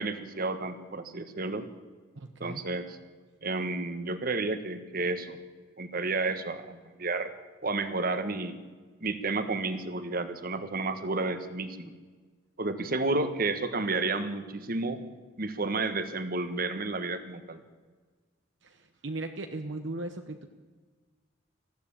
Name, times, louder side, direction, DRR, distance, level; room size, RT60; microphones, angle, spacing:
voice 1, 0.0-1.6 2.4-3.0 3.4-5.4 5.8-7.3 7.6-8.5 9.0-11.9 12.6-15.0 15.4-17.6, right 3 dB, 50° right, 10 dB, 1.4 m, -31 dB
voice 2, 2.2-2.6 18.6-20.5, right 2 dB, 65° right, 7 dB, 1.1 m, -37 dB
20.0 x 15.0 x 8.7 m, 1.4 s
head